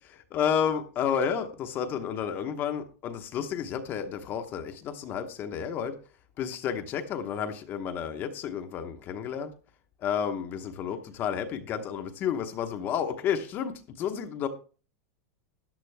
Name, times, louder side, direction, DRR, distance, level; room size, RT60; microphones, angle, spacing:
voice 1, 0.3-5.9 6.4-9.5 10.0-14.5, left 8 dB, 25° left, 7 dB, 0.9 m, -31 dB
13.5 x 9.8 x 3.4 m, 0.37 s
supercardioid pair, 170°, 8 cm